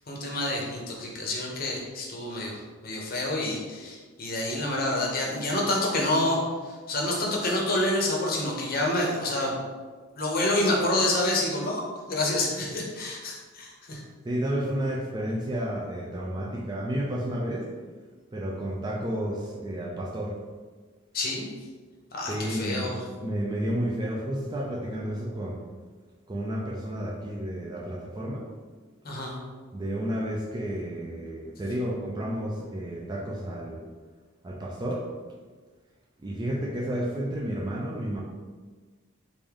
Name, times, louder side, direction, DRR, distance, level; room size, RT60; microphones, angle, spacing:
voice 1, 0.0-9.5 10.2-14.0 21.1-21.5 22.1-23.0 29.0-29.4, left 1 dB, 45° left, -1 dB, 0.7 m, -28 dB
voice 2, 14.2-17.7 18.3-20.4 22.3-22.9 23.2-25.6 26.3-28.5 29.7-33.8 34.4-35.1 36.2-38.2, right 1 dB, 20° right, -1 dB, 0.3 m, -31 dB
3.3 x 2.6 x 3.6 m, 1.4 s
head